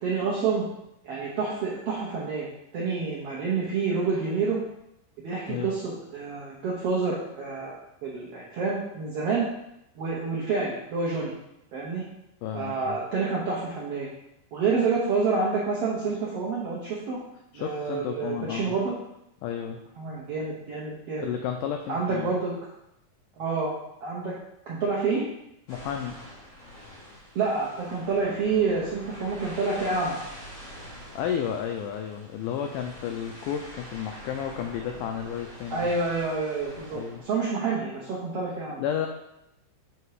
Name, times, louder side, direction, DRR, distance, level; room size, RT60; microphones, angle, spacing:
voice 1, 0.0-0.6 1.0-2.5 2.7-4.6 5.2-7.7 8.0-9.4 10.0-11.3 11.7-12.0 12.5-14.1 14.5-17.2 17.5-18.9 20.0-21.3 21.9-22.5 23.4-23.7 24.0-24.3 24.7-25.2 27.3-30.2 35.7-38.8, right 4 dB, 80° right, -6 dB, 1.3 m, -28 dB
voice 2, 12.4-13.0 17.5-18.7 19.4-19.8 21.2-22.3 25.7-26.2 30.9-35.9 36.9-37.2 38.8-39.1, left 9 dB, 85° left, 4 dB, 1.9 m, -32 dB
sound 1, 25.7-37.5, equal, 40° left, 2.0 m, -45 dB
7.9 x 2.9 x 4.7 m, 0.82 s
omnidirectional pair, 4.1 m